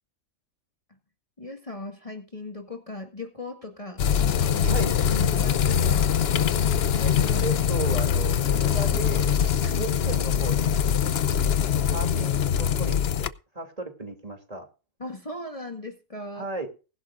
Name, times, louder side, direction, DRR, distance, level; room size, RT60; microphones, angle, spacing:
voice 1, 1.4-4.8 5.1-6.1 9.6-9.9 15.0-16.5, left 2 dB, 25° left, 3 dB, 1.9 m, -38 dB
sound 1, 4.0-13.3, left 8 dB, 55° left, 0.9 m, -23 dB
voice 2, 7.0-10.8 11.6-14.7 16.4-16.7, right 3 dB, 25° right, 4 dB, 2.8 m, -35 dB
20.5 x 11.5 x 2.5 m, 0.33 s
omnidirectional pair, 1.4 m